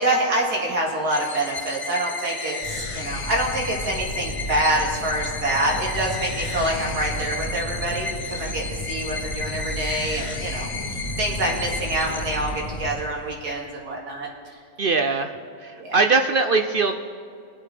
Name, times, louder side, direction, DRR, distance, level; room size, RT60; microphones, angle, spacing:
voice 1, 0.0-14.3 15.8-16.0, right 1 dB, 80° right, -2 dB, 2.9 m, -26 dB
sound 1, 1.1-13.0, left 4 dB, 50° left, 0.3 m, -34 dB
Fire, 2.6-12.9, equal, 25° left, 2.8 m, -33 dB
voice 2, 14.8-15.3 15.6-16.9, right 4 dB, 55° right, 6 dB, 0.6 m, -21 dB
23.0 x 7.9 x 5.0 m, 2.4 s
omnidirectional pair, 1.7 m